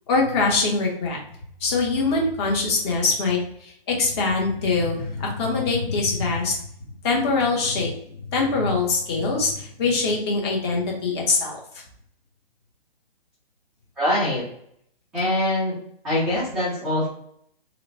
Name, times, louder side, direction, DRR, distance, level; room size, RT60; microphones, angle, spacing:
voice 1, 0.1-1.2 1.6-6.5 7.0-7.9 8.3-11.6, left 3 dB, 25° left, -1 dB, 0.8 m, -23 dB
voice 2, 14.0-14.4 15.1-15.8 16.0-17.1, left 1 dB, ahead, -15 dB, 0.3 m, -23 dB
2.9 x 2.0 x 2.6 m, 0.69 s
figure-of-eight pair, 135°, 30 cm